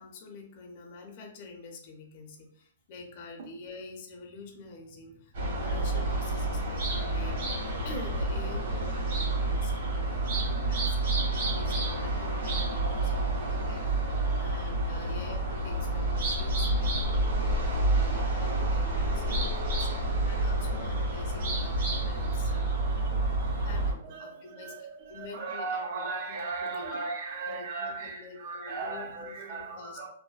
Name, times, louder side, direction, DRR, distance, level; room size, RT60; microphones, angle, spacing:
voice 1, 0.0-7.4 7.8-22.8 23.6-26.9 27.5-30.1, left 3 dB, 45° left, 2 dB, 0.6 m, -46 dB
sound 1, 5.3-23.9, right 2 dB, 65° right, 1.2 m, -29 dB
voice 2, 10.3-10.9 11.3-11.5 11.9-12.0 12.4-12.6 12.9-13.0 13.4-13.7 17.0-17.8 19.1-20.5 23.1-23.6 24.0-30.1, right 4 dB, 50° right, 3 dB, 0.5 m, -39 dB
2.6 x 2.2 x 2.3 m, 0.63 s
hypercardioid pair, 145°, 0 cm